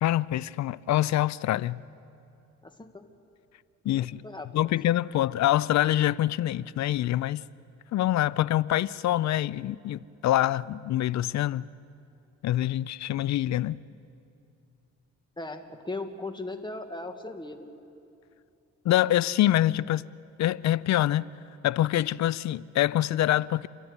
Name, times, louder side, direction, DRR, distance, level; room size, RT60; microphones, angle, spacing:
voice 1, 0.0-1.8 3.8-4.2 4.5-7.4 7.9-11.7 12.4-13.8 18.8-20.1 20.4-21.3 21.6-23.7, left 13 dB, 65° left, 0.5 m, -25 dB
voice 2, 2.6-3.1 3.9-4.7 15.4-17.7, left 2 dB, 15° left, 1.9 m, -38 dB
29.5 x 12.5 x 9.7 m
cardioid pair, 90°, 30 cm